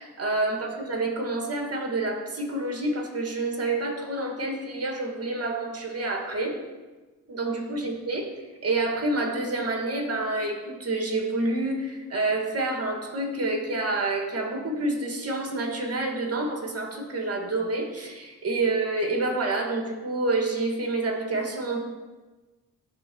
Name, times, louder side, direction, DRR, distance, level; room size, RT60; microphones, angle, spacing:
voice 1, 0.0-6.6 7.3-8.3 8.6-21.8, right 2 dB, 40° right, 0 dB, 1.9 m, -28 dB
12.0 x 4.0 x 3.0 m, 1.2 s
supercardioid pair, 50°, 36 cm